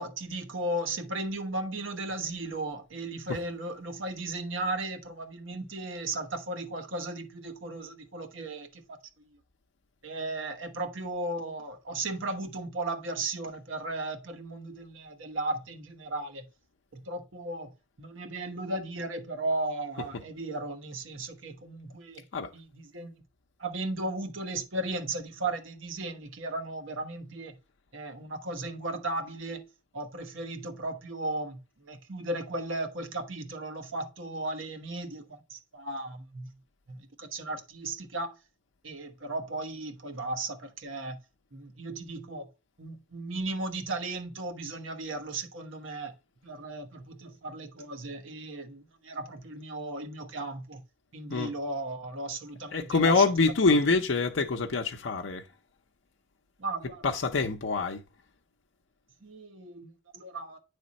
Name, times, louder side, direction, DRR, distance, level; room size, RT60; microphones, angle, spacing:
voice 1, 0.0-9.0 10.0-16.5 16.9-17.7 18.0-22.2 22.5-23.1 23.6-27.6 27.9-29.6 29.9-31.6 31.9-36.5 36.9-38.3 38.8-41.2 41.5-42.5 42.8-46.1 46.4-50.8 51.1-53.9 56.6-57.5 59.2-60.6, right 2 dB, 85° right, 1.2 m, -36 dB
voice 2, 52.7-55.4 57.0-58.0, left 4 dB, 75° left, 0.6 m, -25 dB
9.4 x 3.5 x 4.1 m
head